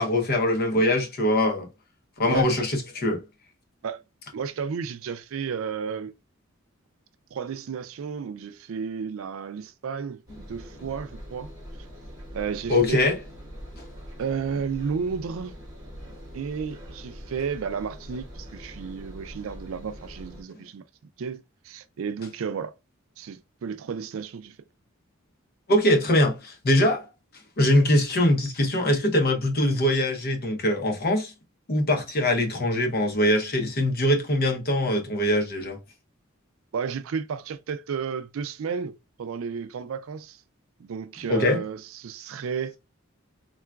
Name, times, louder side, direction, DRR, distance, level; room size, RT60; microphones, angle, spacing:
voice 1, 0.0-1.7 2.2-3.2 12.7-13.1 25.7-27.1 27.6-31.3 31.7-35.8 41.3-41.6, left 1 dB, 50° left, 0.7 m, -22 dB
voice 2, 4.3-6.1 7.3-11.5 12.3-13.1 14.2-15.5 16.3-20.8 21.2-22.7 23.2-24.6 36.7-38.9 39.2-40.4 40.8-42.7, right 6 dB, 75° right, 0.4 m, -32 dB
Engine, 10.3-20.4, equal, 20° right, 1.0 m, -43 dB
3.8 x 2.3 x 2.2 m
head